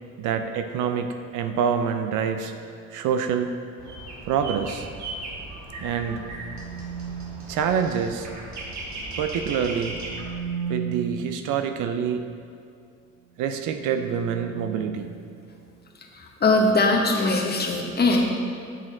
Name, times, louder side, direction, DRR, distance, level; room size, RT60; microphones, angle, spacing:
voice 1, 0.2-2.5 2.9-3.6 4.3-4.9 5.8-6.2 7.5-8.3 9.2-10.0 10.7-12.2 13.4-15.2, right 7 dB, 90° right, 7 dB, 0.5 m, -26 dB
sound 1, 3.8-10.3, right 2 dB, 65° right, 1.5 m, -37 dB
sound 2, 5.7-7.5 9.7-11.3 13.3-15.7, right 7 dB, 10° left, 1.4 m, -36 dB
voice 2, 16.1-18.2, left 2 dB, 35° left, 0 dB, 1.0 m, -21 dB
6.5 x 6.3 x 3.7 m, 2.4 s
cardioid pair, 90°, 30 cm